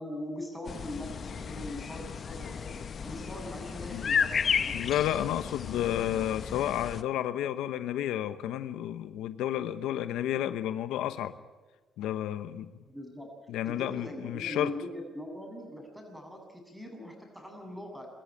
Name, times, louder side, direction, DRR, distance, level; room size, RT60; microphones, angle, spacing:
voice 1, 0.0-2.7 3.0-4.8 12.9-13.3 13.6-18.1, left 1 dB, 5° right, 7.5 m, -41 dB
sound 1, 0.7-7.0, left 6 dB, 50° left, 1.0 m, -33 dB
voice 2, 4.7-11.3 12.0-12.7 13.5-14.7, left 11 dB, 90° left, 0.9 m, -31 dB
24.0 x 13.5 x 10.0 m
cardioid pair, 90°, 0 cm